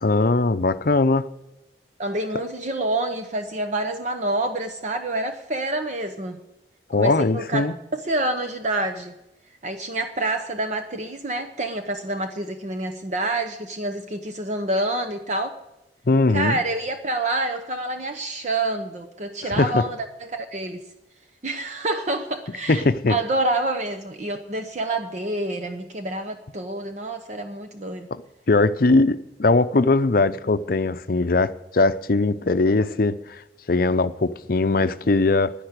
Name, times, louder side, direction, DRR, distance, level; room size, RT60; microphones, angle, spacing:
voice 1, 0.0-1.3 6.9-7.7 16.1-16.6 19.5-19.9 22.7-23.2 28.1-28.2 28.5-33.4 33.7-35.5, left 3 dB, 50° left, 0.6 m, -20 dB
voice 2, 2.0-6.4 7.0-9.1 9.6-15.5 16.3-20.8 21.4-28.1, right 2 dB, 40° right, 0.8 m, -27 dB
11.0 x 10.5 x 6.6 m
head